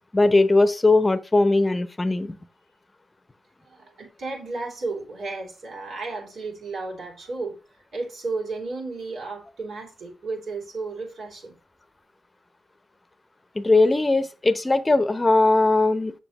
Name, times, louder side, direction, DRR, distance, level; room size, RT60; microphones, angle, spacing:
voice 1, 0.1-2.4 13.5-16.1, left 2 dB, 25° left, 0.8 m, -19 dB
voice 2, 3.6-7.6 7.9-11.6, right 3 dB, 65° right, 2.8 m, -33 dB
6.9 x 6.2 x 3.0 m
hypercardioid pair, 40°, 0 cm